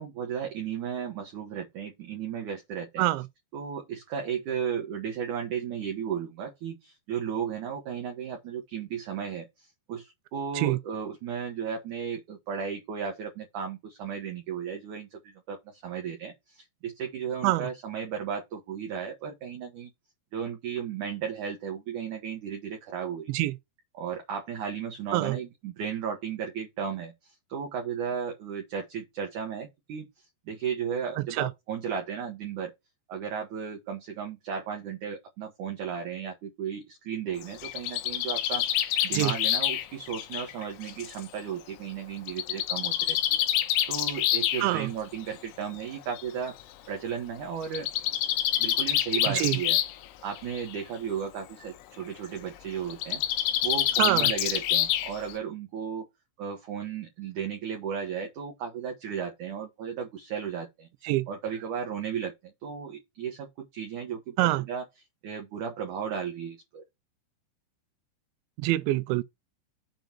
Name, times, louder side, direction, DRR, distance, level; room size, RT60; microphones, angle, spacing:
voice 1, 0.0-3.1 3.5-19.9 20.3-23.4 23.9-30.1 30.5-32.7 33.1-43.4 43.9-46.6 46.9-47.9 48.6-49.8 50.2-53.2 53.6-56.0 56.4-60.9 61.3-64.9 65.2-66.8, right 7 dB, 60° right, 2.3 m, -35 dB
voice 2, 31.2-31.5 39.1-39.3 44.6-44.9 49.3-49.6 54.0-54.3 61.1-61.3 64.4-64.6 68.6-69.2, right 17 dB, 85° right, 2.9 m, -25 dB
Bird, 37.4-41.2 42.3-44.6 45.7-45.8 46.2-46.3 46.5-46.6 47.6-50.1 50.4-50.8 52.9-55.3, left 12 dB, 85° left, 3.2 m, -27 dB
7.5 x 5.1 x 4.4 m
omnidirectional pair, 5.2 m